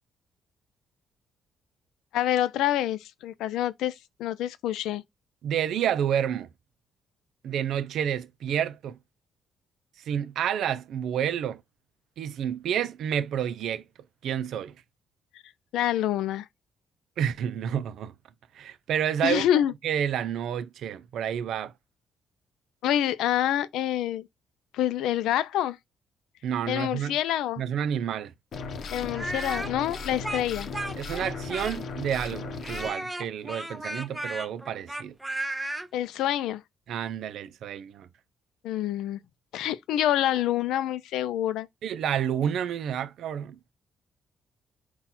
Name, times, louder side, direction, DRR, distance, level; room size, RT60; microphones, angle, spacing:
voice 1, 2.1-5.0 15.7-16.5 19.2-19.7 22.8-24.3 24.7-25.8 26.7-27.6 28.9-30.7 35.9-36.6 38.6-39.2 39.5-41.7, left 12 dB, 90° left, 0.4 m, -27 dB
voice 2, 5.4-6.5 7.4-9.0 10.1-11.6 12.2-13.8 14.2-14.7 17.2-18.1 18.5-19.5 19.8-21.7 26.4-27.2 27.6-28.3 31.0-35.1 36.9-38.1 41.8-43.6, right 9 dB, 75° right, 0.4 m, -29 dB
sound 1, 28.5-32.9, left 4 dB, 60° left, 0.7 m, -37 dB
Speech, 29.1-32.0 32.6-35.9, right 1 dB, 10° right, 0.6 m, -34 dB
4.2 x 2.3 x 4.0 m
cardioid pair, 90°, 0 cm